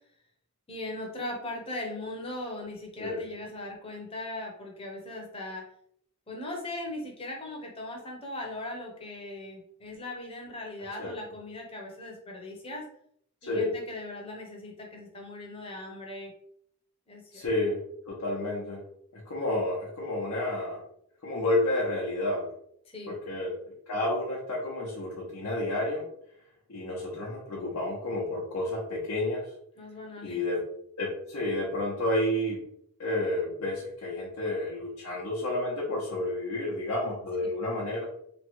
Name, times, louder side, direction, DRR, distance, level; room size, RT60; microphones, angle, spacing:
voice 1, 0.7-5.7 6.3-12.9 13.4-16.3 17.1-17.4 22.9-23.1 29.8-30.4 37.9-38.0, left 2 dB, 25° left, 0 dB, 0.7 m, -39 dB
voice 2, 13.4-13.7 17.3-17.8 18.0-18.8 19.1-20.8 21.2-22.5 23.1-23.6 23.9-26.1 26.7-29.5 30.2-30.6 31.0-32.6 33.0-38.0, left 1 dB, 85° left, -6 dB, 0.8 m, -30 dB
3.0 x 2.2 x 3.0 m, 0.69 s
head